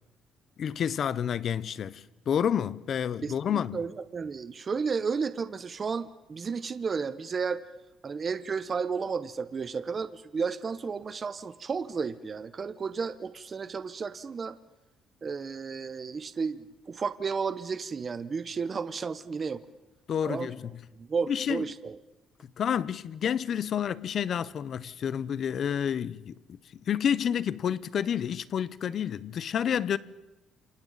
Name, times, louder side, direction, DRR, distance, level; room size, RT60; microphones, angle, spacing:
voice 1, 0.6-3.8 20.1-20.7 21.3-21.6 22.6-26.6 26.9-30.0, left 8 dB, 45° left, 0.7 m, -29 dB
voice 2, 3.2-7.6 8.0-14.6 15.2-19.6 20.2-20.5 21.0-22.0, right 5 dB, 30° right, 0.7 m, -33 dB
29.5 x 27.5 x 4.0 m
cardioid pair, 160°, 0 cm